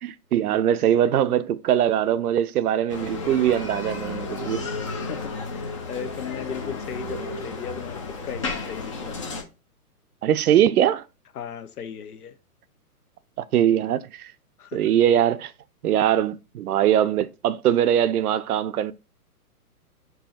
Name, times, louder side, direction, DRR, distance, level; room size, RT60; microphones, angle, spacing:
voice 1, 0.0-4.6 10.2-11.0 13.4-14.3 14.7-15.5 15.8-18.9, right 10 dB, 75° right, 0.6 m, -21 dB
Bicycle, 2.9-9.4, left 3 dB, 25° left, 0.4 m, -33 dB
voice 2, 4.9-9.2 11.3-12.3 14.6-14.8, left 7 dB, 75° left, 0.9 m, -36 dB
4.6 x 2.7 x 4.1 m
hypercardioid pair, 135°, 46 cm